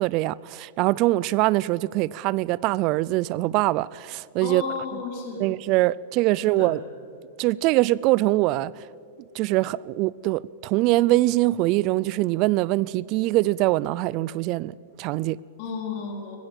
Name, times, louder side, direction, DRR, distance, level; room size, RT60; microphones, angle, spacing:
voice 1, 0.0-4.6 5.4-6.8 7.4-8.7 9.4-15.4, right 18 dB, 40° right, 0.4 m, -23 dB
voice 2, 4.4-5.5 6.4-6.7 15.6-16.4, left 5 dB, 45° left, 3.8 m, -33 dB
20.0 x 15.5 x 8.8 m
supercardioid pair, 150°, 0 cm